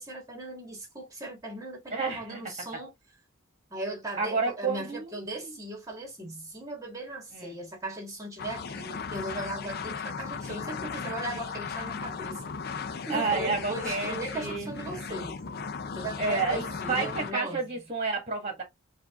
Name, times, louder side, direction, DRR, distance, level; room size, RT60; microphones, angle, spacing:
voice 1, 0.0-2.9 3.7-12.4 12.8-15.4 15.9-17.8, right 1 dB, 15° right, 1.8 m, -38 dB
voice 2, 1.9-2.4 4.2-5.5 7.3-7.6 13.1-14.7 16.2-18.6, right 4 dB, 30° right, 1.5 m, -30 dB
sound 1, 8.4-17.3, left 5 dB, 50° left, 0.6 m, -36 dB
5.0 x 2.6 x 3.6 m
head